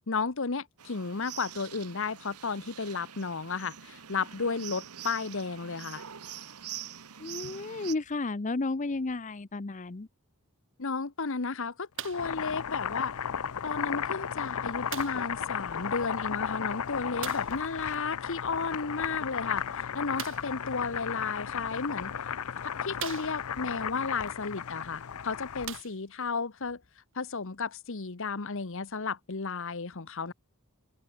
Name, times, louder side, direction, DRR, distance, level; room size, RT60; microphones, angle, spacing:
voice 1, 0.1-6.0 10.8-13.1 13.6-22.1 22.8-26.8 27.1-30.3, left 4 dB, 60° left, 1.1 m, -33 dB
sound 1, 0.8-7.9, right 10 dB, 90° right, 1.3 m, -45 dB
voice 2, 7.2-10.1, left 3 dB, 35° left, 0.7 m, -33 dB
Boiling, 12.0-25.8, left 8 dB, 75° left, 0.6 m, -35 dB
sound 2, 12.0-12.4 13.3-13.4 14.9-15.3 17.2-17.6 20.1-20.6 21.6-21.7 22.3-22.4 23.0-23.7 24.9-25.0 25.6-26.3 27.1-27.2, right 10 dB, 60° right, 2.8 m, -41 dB
open air
head